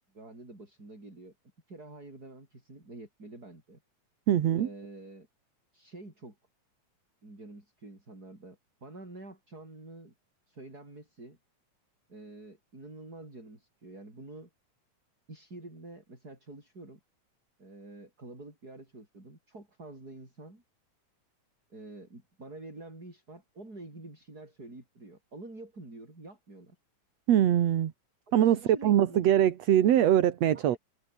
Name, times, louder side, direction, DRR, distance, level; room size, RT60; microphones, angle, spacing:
voice 1, 0.1-1.3 1.7-3.8 4.6-5.3 5.7-6.4 7.2-10.1 10.5-11.4 12.1-14.5 15.3-17.0 17.6-20.6 21.7-26.8 28.3-29.3 30.5-30.8, right 2 dB, 30° right, 8.2 m, -47 dB
voice 2, 4.3-4.7 27.3-27.9 28.3-30.8, right 11 dB, 65° right, 2.5 m, -23 dB
omnidirectional pair, 3.4 m